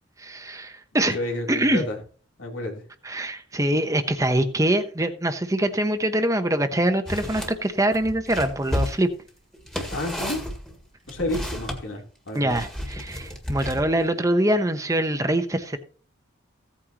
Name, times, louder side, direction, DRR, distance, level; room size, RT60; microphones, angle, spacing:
voice 1, 0.2-1.2 1.5-1.8 3.0-9.1 12.3-15.8, right 1 dB, 15° right, 1.0 m, -24 dB
voice 2, 0.9-2.0 2.4-2.8 9.9-10.4 11.1-12.6, left 1 dB, 85° left, 3.5 m, -31 dB
sound 1, 7.1-7.5 7.9-11.8 12.5-14.0, left 1 dB, 5° left, 1.9 m, -32 dB
16.0 x 8.8 x 3.0 m
head